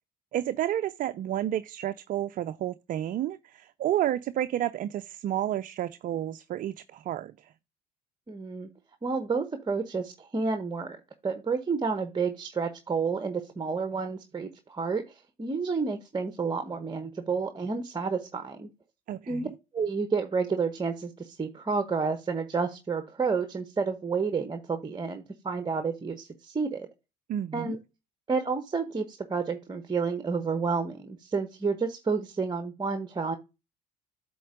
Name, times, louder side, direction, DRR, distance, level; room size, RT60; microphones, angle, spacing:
voice 1, 0.3-7.5 19.1-19.5 27.3-27.7, right 12 dB, 45° right, 0.4 m, -31 dB
voice 2, 8.3-8.7 9.0-11.0 11.2-18.7 19.3-19.5 19.7-26.9 27.5-27.8 28.3-33.4, right 4 dB, 20° right, 1.0 m, -30 dB
8.3 x 3.8 x 5.0 m
hypercardioid pair, 60°, 20 cm